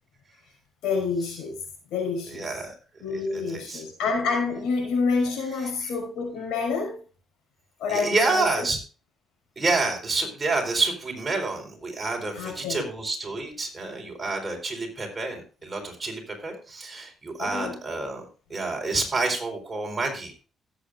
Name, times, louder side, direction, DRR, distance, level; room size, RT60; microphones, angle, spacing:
voice 1, 0.8-1.6 1.9-2.5 3.0-7.0 7.8-8.7 12.3-12.9 17.4-17.8, left 4 dB, 85° left, 1 dB, 6.0 m, -28 dB
voice 2, 2.3-2.7 3.1-3.8 5.8-5.9 7.9-8.8 9.6-18.2 18.5-20.3, right 3 dB, 30° right, 1 dB, 4.4 m, -28 dB
17.0 x 8.3 x 2.5 m, 0.35 s
cardioid pair, 90°, 0 cm